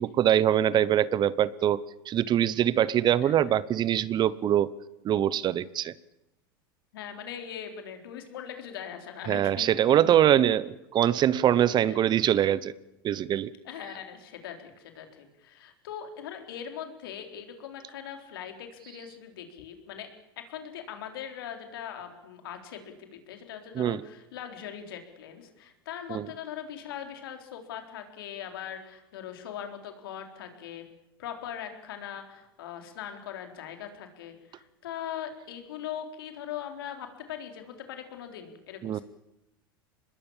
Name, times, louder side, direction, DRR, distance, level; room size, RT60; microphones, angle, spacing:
voice 1, 0.0-4.7 5.0-5.9 9.3-12.7 13.0-13.5 23.8-24.0 26.1-26.3 38.8-39.0, right 11 dB, 40° right, 20 dB, 0.9 m, -23 dB
voice 2, 3.2-3.5 6.9-9.6 11.9-12.0 13.6-20.1 20.4-30.8 31.2-39.0, left 9 dB, 75° left, 5 dB, 4.2 m, -40 dB
25.0 x 21.0 x 7.3 m, 0.94 s
hypercardioid pair, 100°, 12 cm